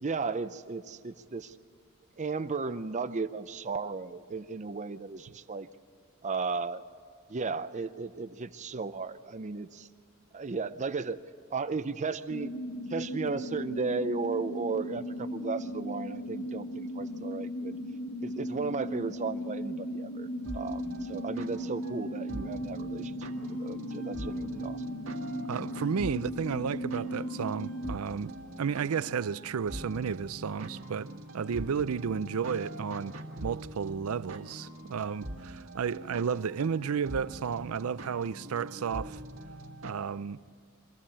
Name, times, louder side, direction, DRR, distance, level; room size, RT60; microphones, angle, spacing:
voice 1, 0.0-1.6 2.2-5.7 6.2-6.8 7.3-9.9 10.3-11.2 11.5-12.5 12.9-17.8 18.2-20.3 20.5-23.3 23.6-24.8, right 4 dB, 35° right, 0.5 m, -35 dB
sound 1, 12.3-28.0, equal, 85° left, 1.2 m, -37 dB
sound 2, 20.4-39.9, right 1 dB, 70° right, 2.0 m, -43 dB
voice 2, 25.5-28.3 28.6-33.1 33.4-39.2 39.8-40.4, right 6 dB, 85° right, 0.5 m, -32 dB
24.5 x 14.5 x 8.6 m
head